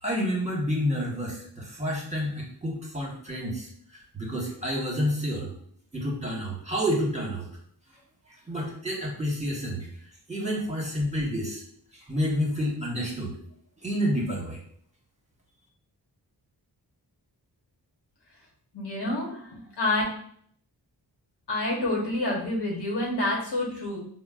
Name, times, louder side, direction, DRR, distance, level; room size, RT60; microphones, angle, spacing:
voice 1, 0.0-5.5 5.9-7.5 8.5-9.9 10.3-11.6 11.9-13.4 13.8-14.6, equal, 15° right, -3 dB, 1.2 m, -29 dB
voice 2, 18.7-20.0 21.5-24.0, left 2 dB, 70° left, -3 dB, 1.0 m, -28 dB
3.8 x 2.1 x 2.3 m, 0.62 s
cardioid pair, 45°, 41 cm